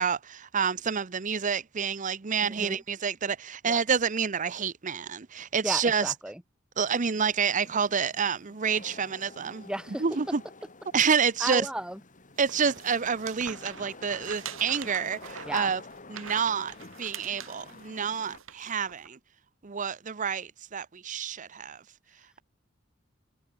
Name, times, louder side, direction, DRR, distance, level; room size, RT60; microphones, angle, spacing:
voice 1, 0.0-6.1 6.8-9.7 10.0-10.4 10.9-11.7 12.4-15.8 16.1-19.2 19.6-21.8, right 6 dB, 40° right, 0.7 m, -28 dB
voice 2, 2.4-2.8 3.7-3.8 5.6-6.4 9.6-10.0 11.4-12.0 15.4-15.7, right 1 dB, 5° right, 0.9 m, -34 dB
Wind / Rain, 6.9-18.4, left 3 dB, 40° left, 3.6 m, -50 dB
sound 1, 12.4-19.1, right 7 dB, 85° right, 2.5 m, -44 dB
head